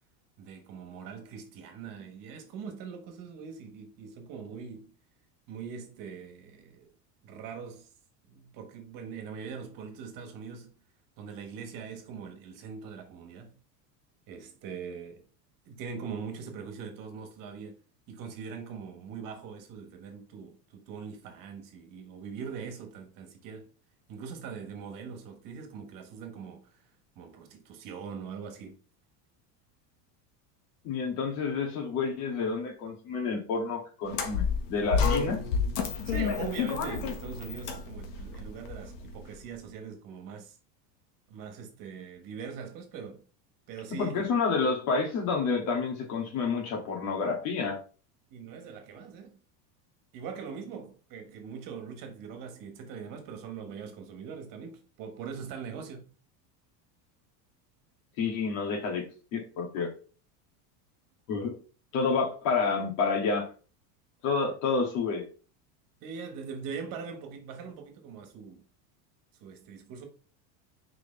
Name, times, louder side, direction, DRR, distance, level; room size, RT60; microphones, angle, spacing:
voice 1, 0.4-4.9 5.5-6.9 7.2-7.9 8.3-10.7 11.2-13.6 14.3-15.2 15.6-17.8 18.1-23.7 24.1-26.9 27.1-28.8 36.0-40.6 41.3-43.2 43.7-44.3 48.3-49.4 50.1-56.1 66.0-68.6 69.4-70.1, right 6 dB, 45° right, 1.5 m, -42 dB
voice 2, 30.8-35.4 44.0-47.8 58.2-59.9 61.3-61.6 61.9-63.5 64.2-65.3, left 4 dB, 65° left, 2.4 m, -29 dB
sound 1, 34.1-39.3, left 6 dB, 85° left, 1.6 m, -30 dB
6.3 x 4.9 x 3.3 m
cardioid pair, 160°, 47 cm